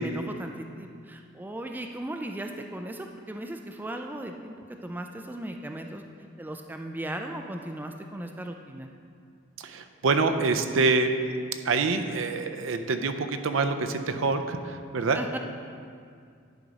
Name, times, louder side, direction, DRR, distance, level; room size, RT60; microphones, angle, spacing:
voice 1, 0.0-4.6 4.8-6.0 6.4-8.9 15.1-15.4, right 1 dB, 10° right, 4 dB, 0.3 m, -37 dB
voice 2, 9.6-11.1 11.6-15.2, right 4 dB, 70° right, 7 dB, 0.5 m, -26 dB
10.5 x 4.9 x 4.0 m, 2.2 s
head